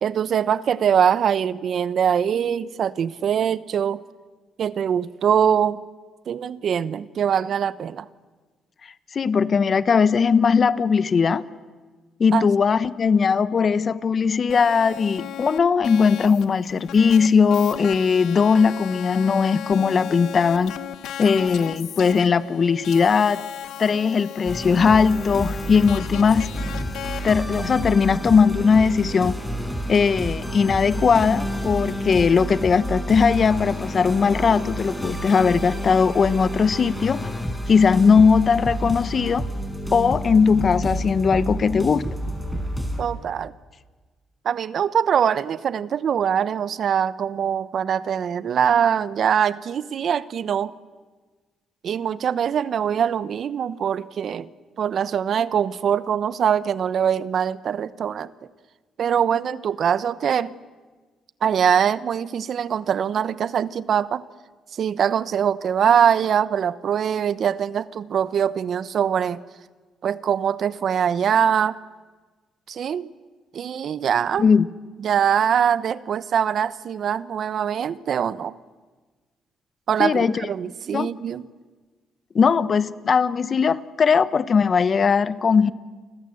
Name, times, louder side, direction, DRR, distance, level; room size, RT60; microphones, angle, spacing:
voice 1, 0.0-4.0 4.6-5.8 6.3-8.0 12.3-12.5 43.0-43.5 44.4-50.7 51.8-54.5 54.8-58.3 59.0-60.6 61.4-64.2 64.7-69.4 70.0-71.8 72.7-73.1 73.5-74.5 75.0-78.5 79.9-81.5, right 8 dB, 60° right, 16 dB, 1.0 m, -23 dB
voice 2, 9.1-11.4 12.2-20.7 21.2-23.4 23.8-26.5 27.2-29.4 29.9-37.3 37.7-39.5 39.9-42.0 74.4-74.7 80.0-80.5 80.9-81.1 82.3-85.7, left 5 dB, 45° left, 15 dB, 1.1 m, -19 dB
sound 1, 14.5-27.3, left 10 dB, 80° left, 1.3 m, -36 dB
sound 2, 24.5-43.0, equal, ahead, 6.2 m, -30 dB
29.5 x 25.0 x 7.8 m, 1.4 s
cardioid pair, 90°, 0 cm